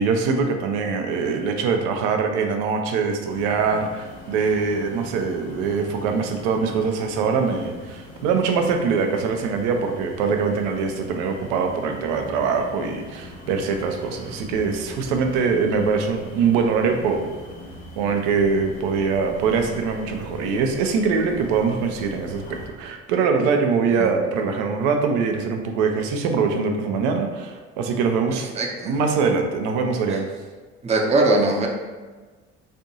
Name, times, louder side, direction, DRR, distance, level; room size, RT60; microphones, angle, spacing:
voice 1, 0.0-17.3 18.0-28.5 28.8-30.3, right 5 dB, 60° right, 4 dB, 0.6 m, -23 dB
sound 1, 3.3-22.7, left 1 dB, 75° left, 1.1 m, -41 dB
voice 2, 28.4-28.9 30.8-31.7, right 2 dB, 20° right, 0 dB, 0.6 m, -21 dB
4.3 x 2.6 x 2.6 m, 1.3 s
figure-of-eight pair, 55°, 36 cm